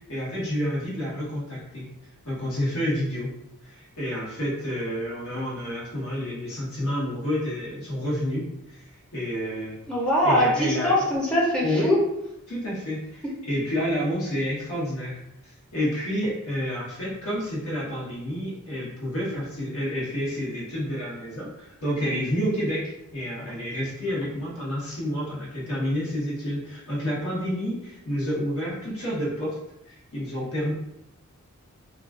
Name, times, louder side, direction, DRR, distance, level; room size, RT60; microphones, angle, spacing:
voice 1, 0.1-1.9 2.2-3.3 3.6-8.5 8.7-8.8 9.1-9.8 10.2-11.0 11.6-12.0 12.5-15.2 15.7-29.6 29.9-30.7, equal, 75° left, -6 dB, 1.0 m, -29 dB
voice 2, 9.9-12.0, equal, 5° left, -5 dB, 0.4 m, -22 dB
2.3 x 2.3 x 2.3 m, 0.84 s
head